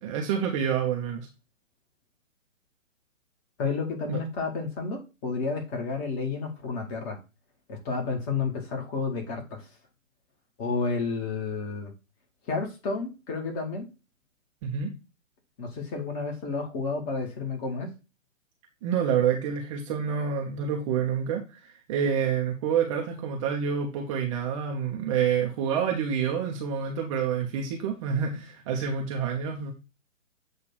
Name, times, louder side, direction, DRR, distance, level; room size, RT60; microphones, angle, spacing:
voice 1, 0.0-1.3 4.1-4.2 14.6-14.9 18.8-29.7, right 7 dB, 25° right, 0 dB, 0.9 m, -28 dB
voice 2, 3.6-7.2 7.7-9.6 10.6-11.9 12.5-13.9 15.6-17.9, left 4 dB, 20° left, 2 dB, 1.6 m, -31 dB
8.0 x 2.7 x 6.1 m, 0.29 s
figure-of-eight pair, 130°, 40 cm